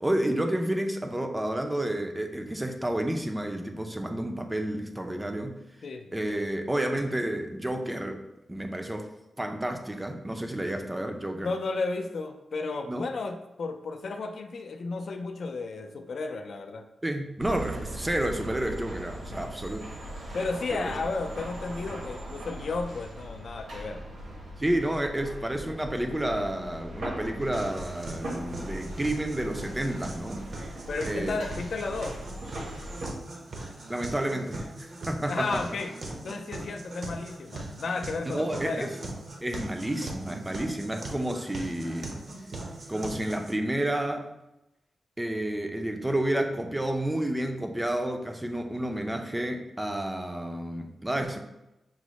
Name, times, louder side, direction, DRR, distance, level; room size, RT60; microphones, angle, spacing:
voice 1, 0.0-5.5 6.1-8.2 8.5-9.1 9.4-11.5 12.9-13.0 17.0-19.8 20.7-20.9 24.6-30.4 31.0-31.4 33.9-35.6 38.3-38.9 39.4-42.1 42.9-44.3 45.2-51.4, right 1 dB, 10° right, 5 dB, 0.4 m, -30 dB
voice 2, 5.8-6.2 11.4-16.9 20.3-24.0 30.9-32.2 35.3-38.9, left 3 dB, 60° left, 6 dB, 0.3 m, -33 dB
sound 1, 17.4-33.1, right 1 dB, 70° right, 1.1 m, -40 dB
sound 2, 27.5-43.5, right 2 dB, 50° right, 0.7 m, -40 dB
6.1 x 2.1 x 3.0 m, 0.91 s
wide cardioid pair, 120°, 0 cm